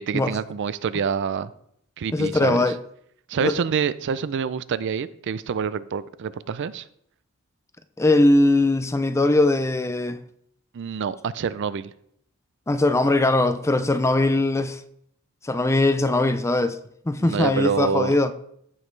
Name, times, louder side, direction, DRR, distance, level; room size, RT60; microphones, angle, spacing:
voice 1, 0.0-1.5 2.0-2.6 3.3-6.9 10.7-11.9 17.2-18.2, right 6 dB, 55° right, 0.4 m, -26 dB
voice 2, 2.1-2.8 3.4-3.5 8.0-10.2 12.7-14.8 15.4-16.8 17.1-18.3, left 2 dB, 15° left, 0.4 m, -20 dB
15.0 x 5.3 x 3.2 m
head